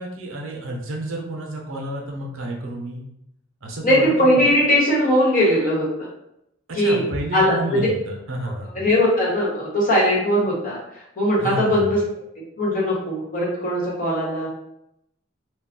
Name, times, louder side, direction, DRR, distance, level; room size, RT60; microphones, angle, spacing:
voice 1, 0.0-3.1 3.6-4.5 6.7-8.8 11.4-11.8, right 1 dB, 70° right, 0 dB, 0.6 m, -30 dB
voice 2, 3.8-6.1 6.7-7.0 7.3-7.9 8.4-10.8 11.2-12.0 12.6-14.5, equal, 40° left, -6 dB, 1.1 m, -20 dB
2.3 x 2.2 x 3.6 m, 0.81 s
head